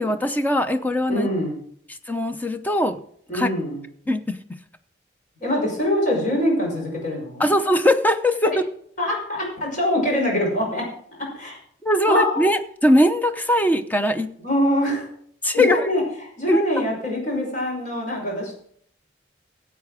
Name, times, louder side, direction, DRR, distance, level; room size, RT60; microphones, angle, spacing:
voice 1, 0.0-1.3 2.1-3.0 3.3-3.5 4.1-4.4 7.4-8.5 11.8-14.3 15.4-15.9 16.5-16.6, left 1 dB, 10° left, 8 dB, 0.7 m, -20 dB
voice 2, 1.1-1.6 3.3-3.8 5.4-7.5 9.0-10.9 11.2-11.6 12.1-12.5 14.4-15.1 15.5-18.5, left 1 dB, 45° left, -1 dB, 5.7 m, -24 dB
15.5 x 8.3 x 4.9 m, 0.62 s
head